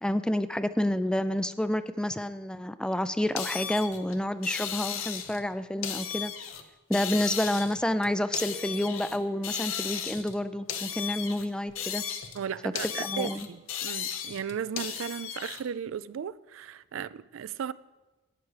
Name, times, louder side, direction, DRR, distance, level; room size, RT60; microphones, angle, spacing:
voice 1, 0.0-6.3 6.9-12.0 12.8-13.5, left 1 dB, 5° left, 0.3 m, -29 dB
sound 1, 3.4-5.4 5.8-6.6 6.9-9.2 9.4-10.4 10.7-12.4 12.8-15.6, left 8 dB, 85° left, 1.0 m, -35 dB
sound 2, 8.4-9.6, left 1 dB, 70° left, 3.9 m, -50 dB
voice 2, 12.3-17.7, right 7 dB, 70° right, 0.4 m, -36 dB
12.0 x 9.0 x 4.9 m
head